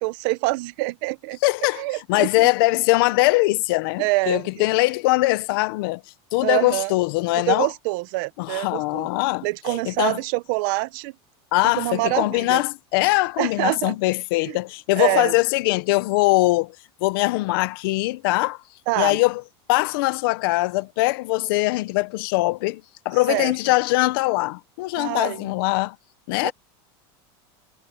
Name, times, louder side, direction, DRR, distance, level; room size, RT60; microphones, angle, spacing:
voice 1, 0.0-1.4 1.8-2.5 4.0-4.4 6.4-6.9 7.3-9.1 9.4-11.1 11.8-12.6 13.4-14.0 14.5-14.6 15.0-15.3 18.9-19.2 23.3-23.5 25.0-25.5 26.4-26.5, right 23 dB, 50° right, 0.8 m, -25 dB
voice 2, 1.4-1.8 2.1-6.0 6.3-7.7 8.4-10.2 11.5-16.8 17.0-18.6 19.0-19.4 19.7-26.0 26.3-26.5, left 21 dB, 55° left, 0.9 m, -22 dB
supercardioid pair, 170°, 14 cm